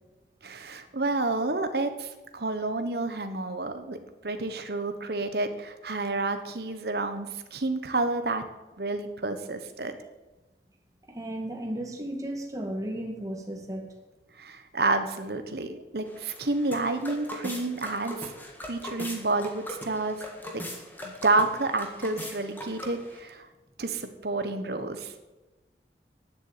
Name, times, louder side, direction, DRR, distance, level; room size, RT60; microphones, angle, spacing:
voice 1, 0.4-4.0 4.2-8.4 8.8-10.0 14.4-18.3 18.6-20.2 20.5-20.6 21.0-23.5 23.8-25.3, right 2 dB, 60° right, 8 dB, 1.2 m, -29 dB
voice 2, 11.1-13.9, right 1 dB, 20° right, 2 dB, 1.9 m, -34 dB
sound 1, 16.1-23.2, left 1 dB, 10° left, 1.9 m, -40 dB
9.9 x 8.1 x 8.6 m, 1.1 s
head